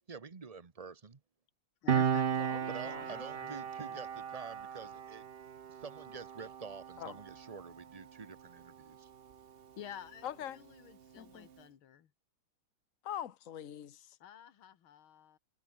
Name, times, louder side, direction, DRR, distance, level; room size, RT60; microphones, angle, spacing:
voice 1, 0.1-1.2 2.7-5.2 5.7-9.1, right 5 dB, 30° right, 0.7 m, -48 dB
voice 2, 1.8-2.3 3.0-4.0 9.8-12.1 14.2-15.4, left 10 dB, 80° left, 2.3 m, -51 dB
Piano, 1.9-8.9 9.2-9.4, right 8 dB, 75° right, 0.5 m, -36 dB
voice 3, 2.4-3.2 7.0-7.2 10.2-10.6 11.2-11.5 13.0-14.2, left 10 dB, 45° left, 1.3 m, -43 dB
omnidirectional pair, 2.3 m